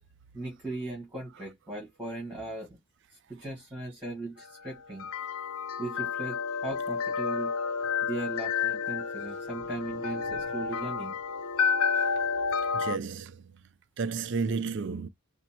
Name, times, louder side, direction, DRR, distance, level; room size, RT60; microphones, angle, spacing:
voice 1, 0.3-2.8 3.3-5.1 5.8-7.5 8.0-11.1, right 2 dB, 5° right, 1.7 m, -38 dB
sound 1, 4.4-13.0, left 6 dB, 75° left, 0.5 m, -30 dB
voice 2, 12.7-13.3 14.0-15.1, right 4 dB, 50° right, 0.4 m, -31 dB
4.2 x 2.0 x 4.3 m
head